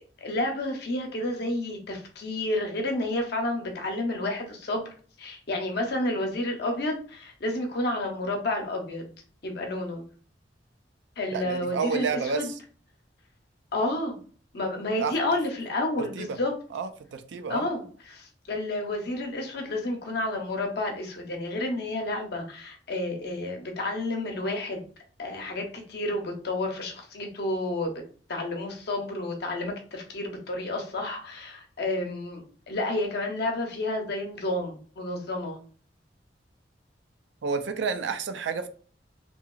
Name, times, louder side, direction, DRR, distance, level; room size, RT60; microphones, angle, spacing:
voice 1, 0.2-4.9 5.2-9.0 9.4-10.0 11.2-12.5 13.7-14.2 14.5-16.5 17.5-24.8 25.2-28.0 28.3-35.6, left 1 dB, 65° left, 0.7 m, -30 dB
voice 2, 11.7-12.4 15.0-15.1 16.2-16.3 16.7-17.6 37.4-38.7, right 5 dB, 80° right, 0.4 m, -29 dB
2.9 x 2.8 x 2.3 m
head